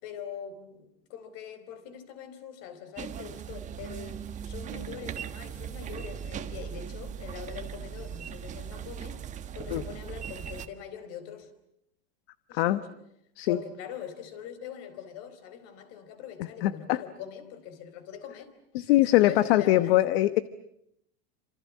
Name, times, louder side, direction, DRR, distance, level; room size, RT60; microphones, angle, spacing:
voice 1, 0.0-9.2 9.5-11.5 12.5-12.9 13.5-18.5 18.9-20.0, left 8 dB, 45° left, 11 dB, 4.5 m, -42 dB
sound 1, 3.0-10.7, right 8 dB, 20° right, 1.5 m, -39 dB
voice 2, 16.4-17.0 18.7-20.4, left 15 dB, 60° left, 14 dB, 1.1 m, -22 dB
28.5 x 26.5 x 7.5 m, 0.78 s
supercardioid pair, 160°, 34 cm